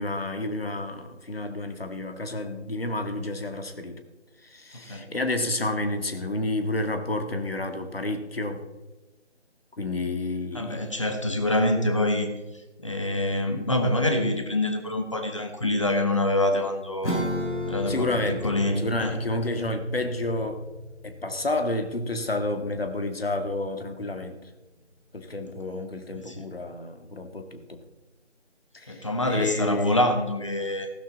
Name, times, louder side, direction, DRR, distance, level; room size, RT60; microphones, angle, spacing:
voice 1, 0.0-4.0 4.4-8.7 9.8-10.9 17.9-18.4 18.8-20.6 21.0-24.5 25.1-27.8 28.7-30.1, left 2 dB, 55° left, 7 dB, 1.9 m, -30 dB
voice 2, 4.7-5.0 10.5-12.3 12.8-17.2 17.7-19.2 25.7-25.8 26.3-26.4 28.9-30.9, left 1 dB, 25° left, 5 dB, 1.3 m, -26 dB
Acoustic guitar / Strum, 17.0-23.0, left 1 dB, 75° left, 4.5 m, -35 dB
16.0 x 13.0 x 4.1 m, 1.1 s
figure-of-eight pair, 170°, 35 cm